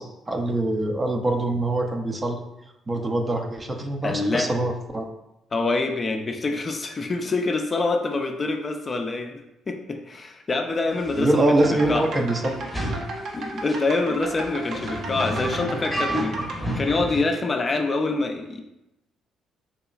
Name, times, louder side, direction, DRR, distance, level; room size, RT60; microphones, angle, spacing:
voice 1, 0.0-2.4 2.9-5.1 11.2-12.6, right 1 dB, 30° right, 3 dB, 0.5 m, -24 dB
voice 2, 4.0-4.5 5.5-9.4 9.7-11.4 11.7-12.1 13.3-16.4 16.8-18.6, left 3 dB, 35° left, 4 dB, 0.4 m, -25 dB
sound 1, 11.0-11.3 11.8-12.0 12.6-13.1 13.7-13.8 14.4-17.2, equal, ahead, 0.8 m, -30 dB
sound 2, 11.6-16.5, right 2 dB, 65° right, 0.7 m, -35 dB
4.1 x 2.9 x 2.4 m, 0.90 s
supercardioid pair, 65°, 0 cm